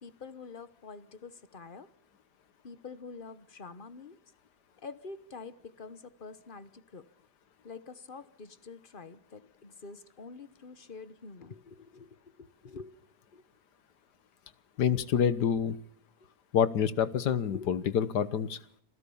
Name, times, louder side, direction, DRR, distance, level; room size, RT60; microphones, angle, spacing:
voice 1, 0.0-1.9 2.6-4.2 4.8-7.1 7.6-12.9 13.3-13.4 16.2-16.3 17.3-17.7, left 4 dB, 35° left, 13 dB, 1.1 m, -46 dB
voice 2, 14.8-15.8 16.5-18.6, left 8 dB, 85° left, 14 dB, 1.7 m, -27 dB
27.0 x 16.0 x 7.1 m, 0.66 s
omnidirectional pair, 1.7 m